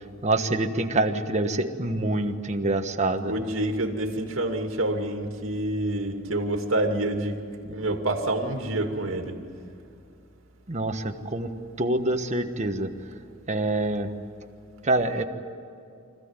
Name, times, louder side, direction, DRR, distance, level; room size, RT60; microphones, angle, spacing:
voice 1, 0.2-3.3 10.7-11.5 11.8-12.9 13.5-14.1 14.8-15.2, right 2 dB, 35° right, 5 dB, 1.3 m, -26 dB
voice 2, 3.2-9.4, right 1 dB, 70° right, 4 dB, 2.5 m, -27 dB
25.5 x 15.5 x 9.7 m, 2.5 s
head